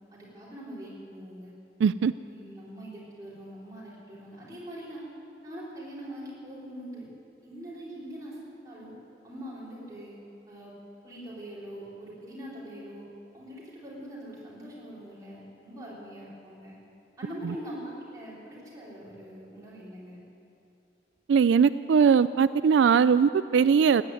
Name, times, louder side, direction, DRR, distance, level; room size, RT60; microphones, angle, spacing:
voice 1, 0.1-1.5 2.2-5.1 5.4-7.1 7.4-8.9 9.2-10.8 11.0-13.1 13.3-16.8 17.2-20.2, equal, 20° right, -6 dB, 4.1 m, -43 dB
voice 2, 1.8-2.1 21.3-24.0, right 6 dB, 85° right, 15 dB, 0.3 m, -20 dB
15.5 x 9.7 x 9.4 m, 2.7 s
head